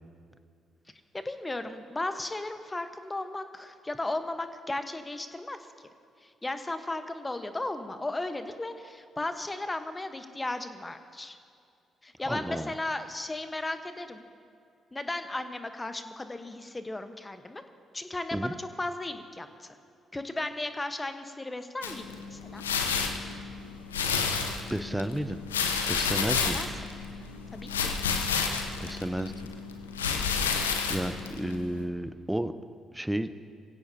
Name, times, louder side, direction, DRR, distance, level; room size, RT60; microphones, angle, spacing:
voice 1, 1.1-5.9 6.2-11.4 12.0-14.2 14.9-17.6 17.9-19.8 20.1-22.6 26.3-26.9 27.5-27.9, left 2 dB, 20° left, 8 dB, 1.2 m, -35 dB
voice 2, 12.3-12.7 18.3-18.5 24.7-25.4 25.9-26.6 28.8-29.3 30.4-32.5 32.9-33.3, right 1 dB, 10° right, 12 dB, 0.8 m, -32 dB
sound 1, 21.8-31.8, left 5 dB, 85° left, 0.8 m, -31 dB
23.5 x 16.5 x 2.9 m, 2.4 s
figure-of-eight pair, 40°, 0 cm